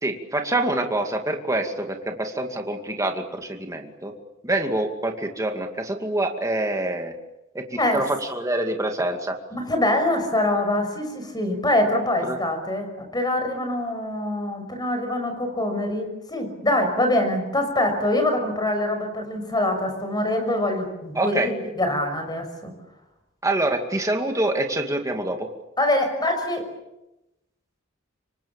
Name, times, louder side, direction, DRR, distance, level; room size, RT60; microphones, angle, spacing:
voice 1, 0.0-4.1 4.4-7.1 7.5-7.6 7.9-9.3 12.2-12.4 21.2-21.5 23.4-25.5, right 2 dB, 15° right, 3 dB, 2.4 m, -26 dB
voice 2, 9.5-22.7 25.8-26.6, left 1 dB, 20° left, 6 dB, 6.3 m, -24 dB
28.0 x 24.5 x 7.2 m, 0.94 s
head